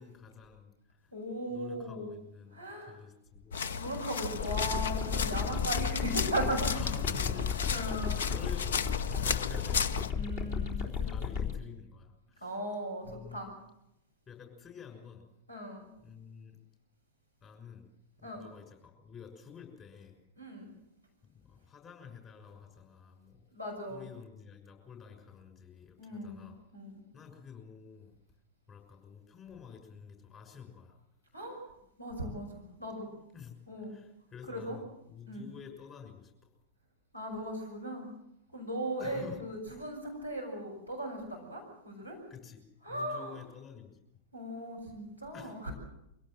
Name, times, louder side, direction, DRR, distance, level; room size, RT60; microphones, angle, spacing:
voice 1, 0.0-1.1 1.5-3.6 6.7-10.2 10.7-12.6 13.0-13.4 14.3-15.2 16.0-16.6 17.4-17.9 18.2-20.2 21.2-23.4 23.9-26.6 27.1-28.1 28.7-31.0 33.3-33.5 33.9-36.5 39.0-39.4 42.3-44.0 45.3-45.6, left 7 dB, 25° left, 4 dB, 6.3 m, -50 dB
voice 2, 1.1-2.1 2.5-3.0 3.7-6.8 7.1-7.3 7.7-8.2 10.1-11.1 12.4-13.5 15.5-15.8 18.2-18.4 20.4-20.7 23.5-24.1 26.0-27.0 31.3-31.6 32.0-33.1 33.7-33.9 34.5-34.8 35.3-35.4 37.1-38.1 38.5-42.2 42.8-43.4 44.3-45.7, right 1 dB, 85° left, 1 dB, 6.3 m, -38 dB
sound 1, 3.5-10.1, left 6 dB, 60° left, 0.8 m, -34 dB
sound 2, 4.4-11.5, left 7 dB, 45° left, 3.5 m, -34 dB
24.0 x 17.5 x 7.7 m, 0.83 s
figure-of-eight pair, 100°, 0 cm